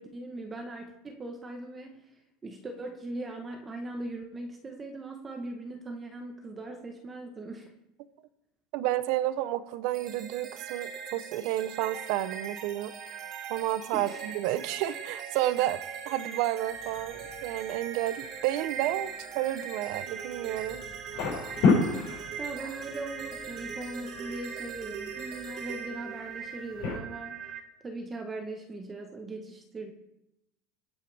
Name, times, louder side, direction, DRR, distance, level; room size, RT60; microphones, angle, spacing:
voice 1, 0.0-2.0 2.4-7.7 13.9-14.2 22.4-27.5 27.8-29.9, right 2 dB, 20° right, 4 dB, 1.2 m, -40 dB
voice 2, 8.7-12.9 13.5-15.8 16.1-20.8, right 14 dB, 60° right, 14 dB, 0.8 m, -31 dB
sound 1, 9.9-27.6, right 7 dB, 45° right, 1.7 m, -40 dB
sound 2, 16.6-27.0, left 4 dB, 65° left, 5.4 m, -34 dB
21.0 x 8.2 x 3.5 m, 0.89 s
supercardioid pair, 145°, 0 cm